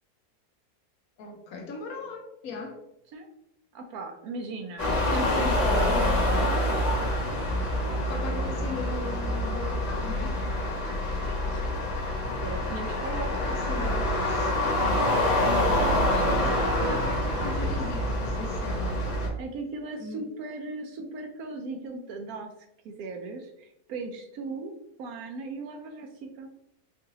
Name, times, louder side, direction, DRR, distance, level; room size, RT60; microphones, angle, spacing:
voice 1, 1.2-2.8 8.1-10.4 13.0-14.8 16.4-19.1 20.0-20.3, left 3 dB, 70° left, 1.0 m, -38 dB
voice 2, 3.7-6.2 11.1-11.8 12.4-13.3 15.8-17.1 19.4-22.5 22.8-24.7 25.0-26.5, right 3 dB, 70° right, 1.0 m, -37 dB
sound 1, 4.8-19.3, left 1 dB, 50° left, 1.4 m, -26 dB
4.6 x 2.5 x 2.8 m
omnidirectional pair, 1.7 m